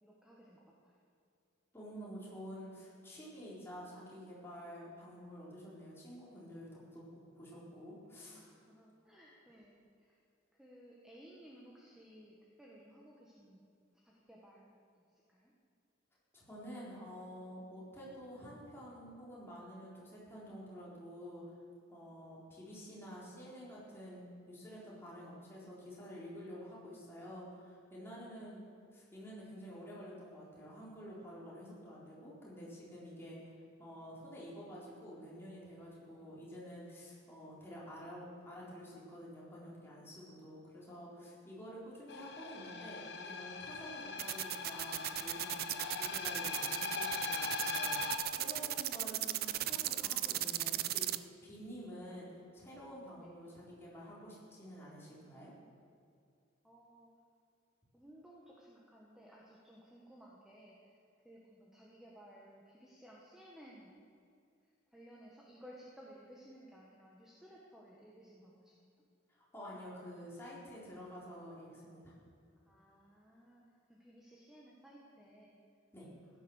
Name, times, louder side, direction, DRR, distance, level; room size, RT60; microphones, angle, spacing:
voice 1, 0.0-1.0 8.3-10.2 10.5-13.6 14.0-15.5 53.2-53.3 56.6-57.1 57.9-63.9 64.6-68.9 72.6-73.6 73.9-75.6, equal, 5° right, -4 dB, 1.6 m, -58 dB
voice 2, 1.7-8.4 16.3-21.4 21.9-33.4 33.8-51.1 51.4-52.3 52.5-55.5 69.3-72.1 75.9-76.1, equal, 15° left, -7 dB, 4.2 m, -49 dB
sound 1, 42.1-48.2, left 5 dB, 60° left, 1.3 m, -41 dB
sound 2, 44.2-51.2, right 14 dB, 50° right, 0.4 m, -35 dB
15.5 x 10.5 x 6.5 m, 2.4 s
head